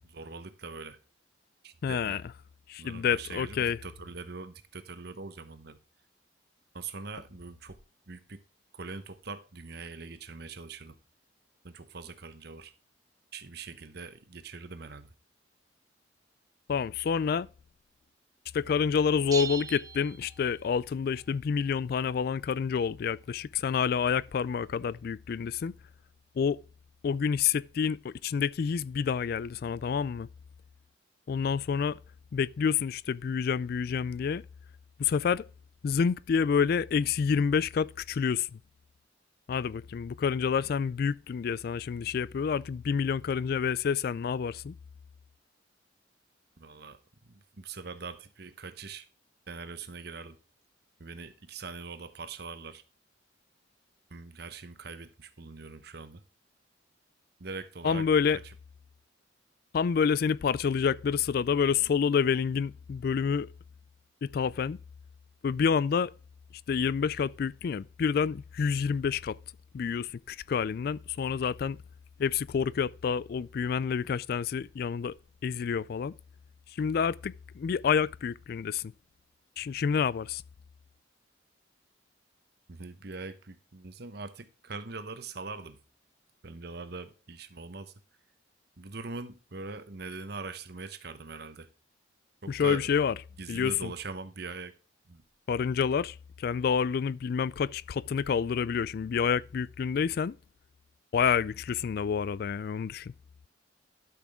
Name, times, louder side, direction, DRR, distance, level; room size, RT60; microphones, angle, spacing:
voice 1, 0.1-1.0 1.6-2.2 2.8-5.8 6.7-7.8 8.1-8.4 8.7-11.0 11.6-12.7 13.3-15.1 46.6-47.0 47.2-49.1 49.5-50.4 51.0-52.8 54.1-56.2 57.4-58.1 58.4-58.5 82.7-85.8 86.4-87.9 88.8-91.7 92.4-92.9 93.4-94.7 95.1-95.2, right 4 dB, 55° right, 1.0 m, -42 dB
voice 2, 1.8-2.2 2.7-3.8 16.7-17.5 18.5-25.7 26.4-26.6 27.0-30.3 31.3-32.0 32.3-34.4 35.0-35.4 35.8-38.6 39.5-44.8 57.8-58.4 59.7-63.5 64.2-64.8 65.4-66.1 66.7-69.4 69.7-71.8 72.2-75.1 75.4-76.1 76.8-78.9 79.6-80.4 92.5-93.1 93.5-93.9 95.5-100.3 101.1-103.1, left 6 dB, 55° left, 0.3 m, -28 dB
sound 1, 19.3-20.9, right 6 dB, 20° right, 0.5 m, -38 dB
12.0 x 6.1 x 3.4 m
head